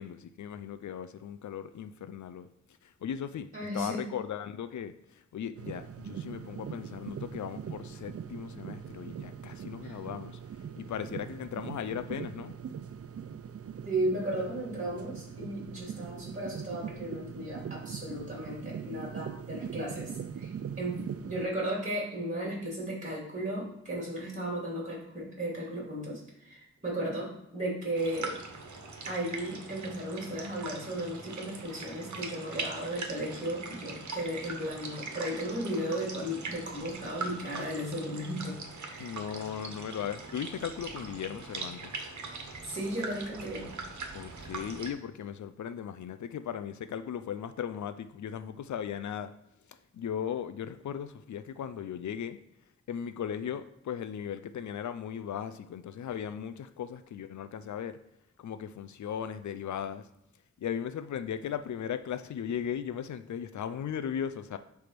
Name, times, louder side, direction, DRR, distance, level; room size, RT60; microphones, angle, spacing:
voice 1, 0.0-2.5 2.8-3.5 3.7-10.4 10.8-12.5 39.0-41.9 44.1-49.3 49.9-52.4 52.9-57.9 58.4-60.0 60.6-64.6, left 8 dB, 80° left, 11 dB, 0.5 m, -37 dB
voice 2, 3.5-4.0 9.8-9.9 13.8-21.0 21.2-28.4 29.0-39.1 42.6-43.7, right 1 dB, 25° right, -3 dB, 3.1 m, -35 dB
sound 1, 5.6-21.5, right 7 dB, 55° right, 0.5 m, -41 dB
sound 2, 27.9-44.9, right 3 dB, 80° right, 1.3 m, -41 dB
7.8 x 3.5 x 6.0 m, 0.85 s
wide cardioid pair, 85°, 29 cm